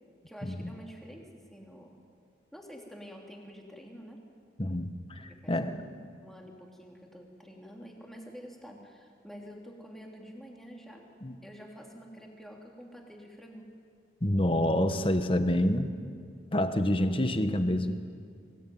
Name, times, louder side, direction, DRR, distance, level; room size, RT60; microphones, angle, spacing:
voice 1, 0.3-1.9 2.5-4.2 5.4-5.9 6.2-11.0 11.4-13.7, equal, ahead, -1 dB, 3.1 m, -48 dB
voice 2, 4.6-5.8 11.2-11.3 14.2-15.9 16.5-18.0, left 1 dB, 30° left, 8 dB, 1.2 m, -27 dB
24.5 x 17.5 x 9.3 m, 2.3 s
head